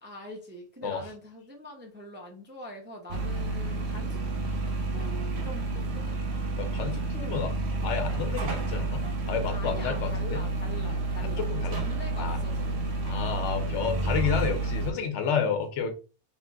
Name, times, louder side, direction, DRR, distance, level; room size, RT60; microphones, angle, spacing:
voice 1, 0.0-4.2 4.9-6.2 9.5-12.8 15.2-15.5, equal, 15° right, 1 dB, 0.3 m, -43 dB
sound 1, 3.1-14.9, right 2 dB, 70° right, 0.9 m, -30 dB
voice 2, 6.6-7.5 7.8-10.4 11.2-11.8 12.2-12.4 13.0-15.9, left 6 dB, 80° left, 5 dB, 1.0 m, -31 dB
3.9 x 2.5 x 2.3 m, 0.34 s
omnidirectional pair, 1.2 m